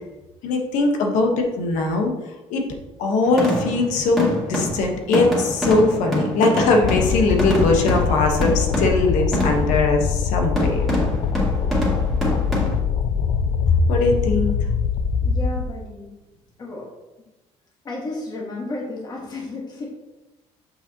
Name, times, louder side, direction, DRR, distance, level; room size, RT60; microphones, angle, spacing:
voice 1, 0.4-2.1 2.5-2.6 3.0-10.9 13.9-14.5, left 3 dB, 85° left, 2 dB, 1.3 m, -20 dB
sound 1, 3.2-9.9 10.6-12.8, equal, ahead, 2.3 m, -25 dB
sound 2, 6.8-15.6, left 7 dB, 60° left, 0.4 m, -23 dB
voice 2, 15.2-16.1 16.6-16.9 17.8-19.9, left 2 dB, 35° left, -3 dB, 1.5 m, -32 dB
7.0 x 5.6 x 2.9 m, 1.0 s
cardioid pair, 125°, 12 cm